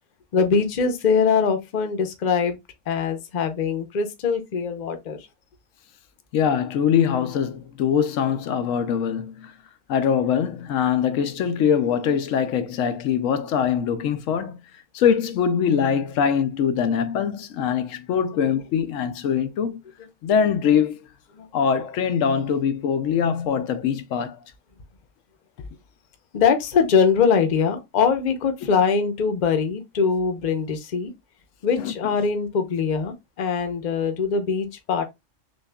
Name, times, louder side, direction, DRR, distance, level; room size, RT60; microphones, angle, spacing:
voice 1, 0.3-2.6 2.9-5.3 18.4-18.6 21.3-21.5 26.3-31.1 31.6-35.0, left 6 dB, 45° left, 0.7 m, -22 dB
voice 2, 6.3-9.5 9.9-14.6 14.9-19.8 20.2-21.0 21.5-24.4 31.8-31.9, left 7 dB, 85° left, 1.0 m, -23 dB
6.4 x 2.4 x 2.3 m
omnidirectional pair, 1.3 m